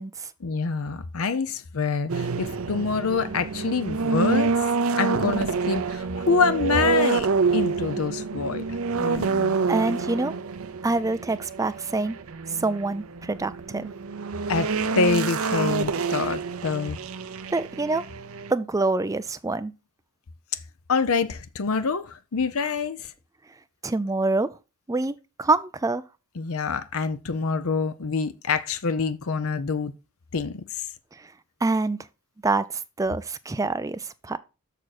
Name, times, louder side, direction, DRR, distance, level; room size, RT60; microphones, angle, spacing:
voice 1, 0.4-4.7 5.0-8.6 8.9-9.6 14.5-17.0 20.9-23.1 26.4-29.9 30.3-30.9, left 4 dB, 70° left, 0.7 m, -26 dB
sound 1, 2.1-18.5, right 4 dB, 65° right, 0.7 m, -27 dB
voice 2, 9.7-10.3 10.8-12.2 12.6-13.9 17.5-18.0 18.5-19.7 23.8-24.5 24.9-26.0 31.6-32.0 32.4-34.4, right 3 dB, 15° right, 0.4 m, -26 dB
6.7 x 6.3 x 4.1 m
head